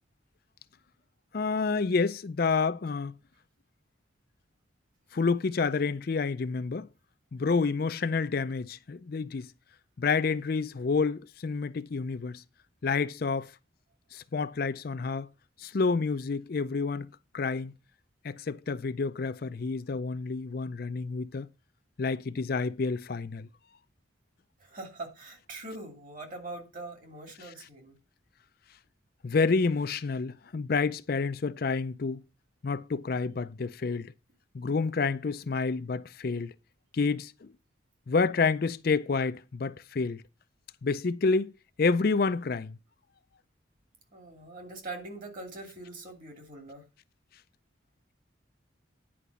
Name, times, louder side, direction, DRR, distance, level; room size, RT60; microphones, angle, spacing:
voice 1, 1.3-3.1 5.1-6.9 7.3-9.5 10.0-12.4 12.8-13.5 14.1-15.3 15.6-17.1 17.3-17.7 18.2-21.5 22.0-23.5 29.2-32.2 32.6-34.1 34.5-36.5 36.9-37.5 38.1-40.2 40.8-41.5 41.8-42.8, left 4 dB, 50° left, 0.4 m, -29 dB
voice 2, 24.6-28.0 44.1-46.8, right 2 dB, 40° right, 2.7 m, -42 dB
10.0 x 5.1 x 6.9 m
head